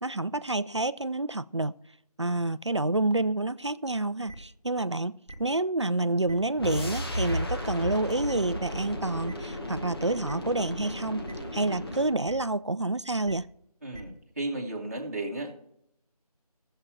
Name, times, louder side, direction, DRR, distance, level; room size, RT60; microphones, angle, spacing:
voice 1, 0.0-1.7 2.2-13.5, right 2 dB, 45° right, 0.4 m, -28 dB
sound 1, 4.3-4.4 5.3-5.4 6.3-6.4 7.3-7.4 8.3-8.4 9.3-9.4 10.3-10.4 11.3-11.4 12.2-12.3 13.2-13.3 13.9-14.0, right 2 dB, 5° left, 1.5 m, -43 dB
sound 2, 6.6-12.2, left 1 dB, 40° left, 1.3 m, -34 dB
voice 2, 13.8-15.5, right 2 dB, 25° right, 1.6 m, -34 dB
15.0 x 7.7 x 4.5 m
figure-of-eight pair, 170°, 20 cm